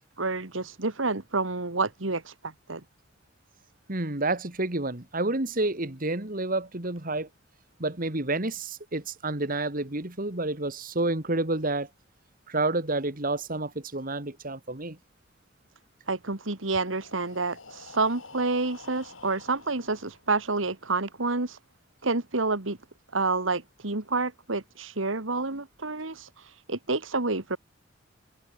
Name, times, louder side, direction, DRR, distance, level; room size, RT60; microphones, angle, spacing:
voice 1, 0.2-2.8 16.1-21.6 22.0-22.8 23.1-26.3 26.7-27.6, right 3 dB, 75° right, 2.1 m, -29 dB
voice 2, 3.9-7.3 7.8-11.9 12.5-15.0, right 2 dB, 45° right, 2.4 m, -29 dB
Breathing, 16.8-20.6, left 4 dB, 85° left, 6.1 m, -49 dB
head